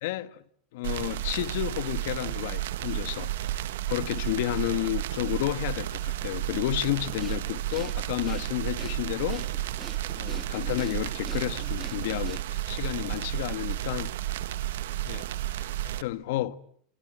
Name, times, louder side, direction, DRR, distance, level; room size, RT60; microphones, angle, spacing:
voice 1, 0.0-0.4 0.7-3.3 3.9-9.5 10.1-14.1 15.0-16.6, left 15 dB, 70° left, 1.5 m, -31 dB
sound 1, 0.8-16.0, right 14 dB, 90° right, 1.7 m, -32 dB
Breathing, 7.2-12.7, right 2 dB, 10° right, 2.1 m, -46 dB
26.0 x 25.0 x 8.9 m
supercardioid pair, 155°, 0 cm